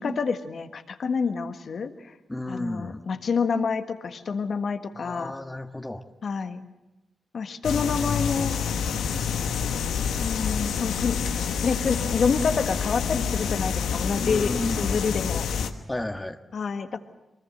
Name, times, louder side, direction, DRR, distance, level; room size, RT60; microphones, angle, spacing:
voice 1, 0.0-2.1 2.5-5.3 6.2-6.6 7.3-8.6 10.2-11.2 11.6-15.5 16.5-17.0, left 5 dB, 65° left, 8 dB, 1.6 m, -28 dB
voice 2, 2.3-3.0 5.0-6.0 14.2-15.0 15.9-16.4, left 1 dB, 20° left, 5 dB, 1.6 m, -33 dB
sound 1, 7.6-15.7, left 7 dB, 85° left, 1.3 m, -27 dB
24.0 x 21.5 x 8.0 m, 1.0 s
supercardioid pair, 40°, 0 cm